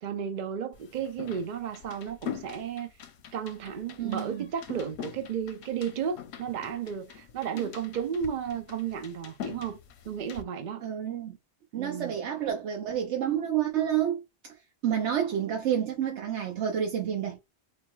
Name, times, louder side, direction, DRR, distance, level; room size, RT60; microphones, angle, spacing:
voice 1, 0.0-2.9 3.3-9.8 10.0-10.8 11.7-12.2, right 8 dB, 55° right, 0.5 m, -33 dB
sound 1, 0.7-10.4, left 9 dB, 70° left, 0.9 m, -44 dB
voice 2, 4.0-4.5 7.5-7.7 10.8-11.4 11.7-14.2 14.8-17.4, right 9 dB, 85° right, 1.1 m, -29 dB
3.9 x 2.2 x 3.1 m
omnidirectional pair, 1.2 m